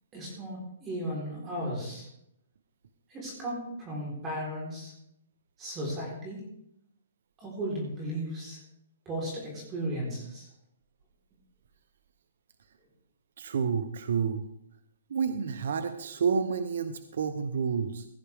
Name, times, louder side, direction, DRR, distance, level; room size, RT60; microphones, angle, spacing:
voice 1, 0.1-2.1 3.1-4.9 5.6-6.4 7.4-8.6 9.1-10.5, equal, 20° right, -3 dB, 4.0 m, -35 dB
voice 2, 13.4-14.4 15.1-18.1, right 6 dB, 70° right, 10 dB, 0.9 m, -29 dB
16.0 x 10.5 x 3.5 m, 0.76 s
hypercardioid pair, 155°, 0 cm